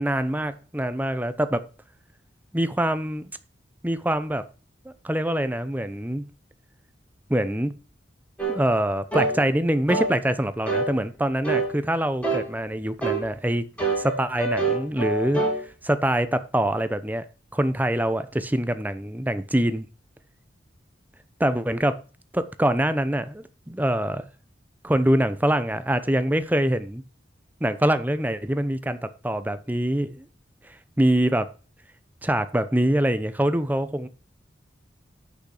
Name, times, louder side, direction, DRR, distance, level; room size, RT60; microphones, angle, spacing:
voice 1, 0.0-1.6 2.5-3.3 3.8-4.4 4.8-6.2 7.3-7.7 8.5-13.6 14.0-15.4 15.8-17.2 17.5-19.9 21.4-22.0 22.3-24.3 24.8-27.0 27.6-29.0 29.2-30.2 31.0-31.5 32.2-34.1, right 1 dB, 10° right, 0.8 m, -24 dB
sound 1, 8.4-8.6 9.1-9.4 9.9-10.1 10.7-10.9 11.4-11.7 12.2-12.5 13.0-13.2 13.8-15.6, right 3 dB, 10° left, 3.1 m, -25 dB
8.7 x 6.4 x 6.6 m
head